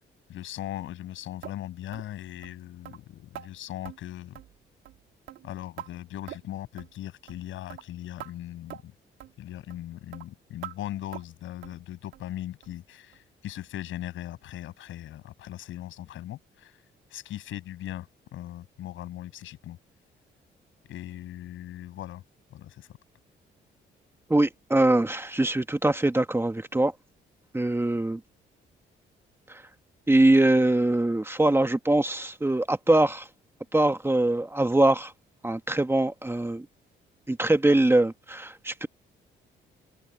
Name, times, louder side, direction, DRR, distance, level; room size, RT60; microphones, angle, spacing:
voice 1, 0.3-4.4 5.4-8.9 9.4-16.8 17.1-19.8 20.9-22.2 22.5-23.0, left 13 dB, 80° left, 7.2 m, -39 dB
sound 1, 1.4-1.6 1.9-2.1 2.4-2.5 2.8-3.0 3.3-3.5 3.8-4.0 4.3-4.6 4.8-5.0 5.3-5.9 6.3-6.5 6.8-6.9 7.3-7.4 7.7-7.9 8.2-8.3 8.7-8.8 9.2-9.3 9.7-9.8 10.1-10.3 10.6-10.8 11.1-11.3 11.6-11.8 12.1-12.3 12.6-12.7 13.1-13.2 13.6-13.7, right 12 dB, 85° right, 2.4 m, -43 dB
voice 2, 24.3-26.9 27.5-28.2 29.5-29.6 30.1-33.3 33.7-35.1 35.4-36.6 37.3-38.9, right 1 dB, 10° right, 1.5 m, -23 dB
cardioid pair, 90°, 20 cm